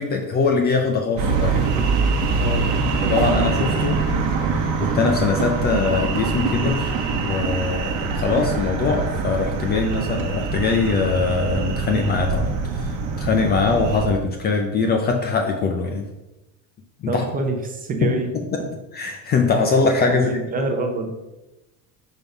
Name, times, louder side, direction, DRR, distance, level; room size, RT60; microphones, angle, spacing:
voice 1, 0.0-1.7 3.0-4.0 4.8-16.1 17.0-17.2 18.0-18.1 18.5-18.6 18.9-20.3, left 4 dB, 25° left, 3 dB, 0.4 m, -22 dB
sound 1, 1.2-14.1, right 4 dB, 50° right, 1.0 m, -23 dB
voice 2, 2.4-2.7 17.1-18.3 18.6-18.7 20.1-21.3, right 3 dB, 20° right, 4 dB, 0.6 m, -26 dB
5.4 x 4.5 x 5.5 m, 1.0 s
cardioid pair, 170°, 39 cm